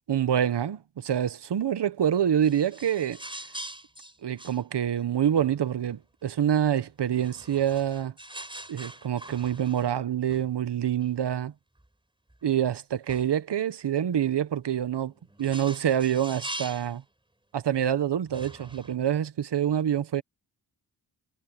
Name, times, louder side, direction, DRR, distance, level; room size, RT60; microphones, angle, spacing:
voice 1, 0.1-3.2 4.2-8.1 8.7-11.5 12.4-15.1 15.4-17.0 17.5-20.2, right 9 dB, 75° right, 0.9 m, -26 dB
sound 1, 2.4-6.0 7.0-10.0 10.3-10.5 11.0-11.1 11.8-11.9 12.3-12.4 13.1-13.3 15.0-17.0 17.8-17.9 18.2-19.0, right 1 dB, 10° right, 4.7 m, -43 dB
wide cardioid pair, 100°, 42 cm